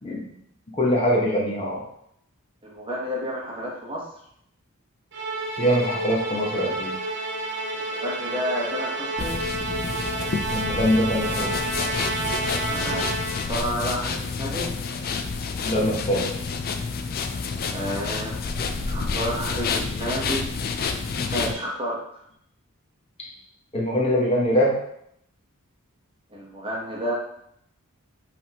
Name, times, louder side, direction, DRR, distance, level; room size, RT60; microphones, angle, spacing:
voice 1, 0.8-1.8 5.6-6.9 10.5-11.5 15.6-16.3 23.7-24.8, equal, 25° left, -3 dB, 0.9 m, -23 dB
voice 2, 2.6-4.0 7.7-9.4 12.6-13.1 13.5-14.7 17.7-18.4 18.9-20.5 21.3-22.0 26.3-27.1, equal, 25° right, -3 dB, 1.0 m, -30 dB
Musical instrument, 5.1-13.6, right 2 dB, 55° right, 0.6 m, -30 dB
sound 1, 9.2-21.5, left 4 dB, 45° left, 0.4 m, -29 dB
5.1 x 3.4 x 2.9 m, 0.73 s
head